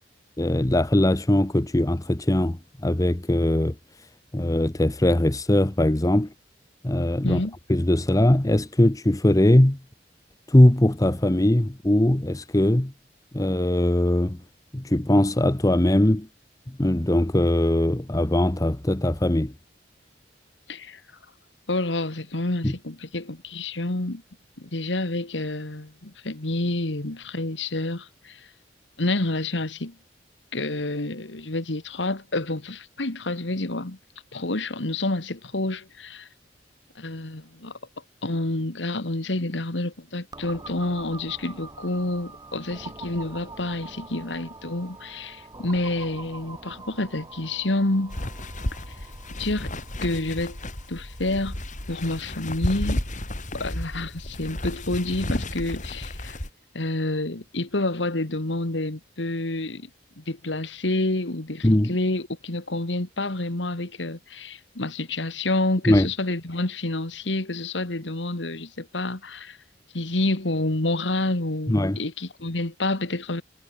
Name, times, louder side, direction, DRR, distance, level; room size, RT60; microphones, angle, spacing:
voice 1, 0.4-3.7 4.3-6.3 6.8-7.4 7.7-9.8 10.5-12.9 13.3-14.4 14.7-16.3 16.7-19.5 22.6-22.7 61.6-61.9 65.9-66.1 71.7-72.0, left 1 dB, 20° left, 1.0 m, -20 dB
voice 2, 7.2-7.5 20.7-21.0 21.7-24.2 24.6-28.5 29.0-29.9 30.5-34.0 34.3-36.3 37.0-37.8 38.2-48.2 49.4-49.7 50.0-50.6 50.9-51.6 51.9-53.0 53.5-56.4 56.7-59.9 60.2-69.6 69.9-73.4, left 2 dB, 85° left, 2.1 m, -28 dB
sound 1, 40.3-53.9, right 3 dB, 20° right, 6.4 m, -45 dB
sound 2, 48.1-56.5, left 1 dB, 45° left, 3.7 m, -32 dB
head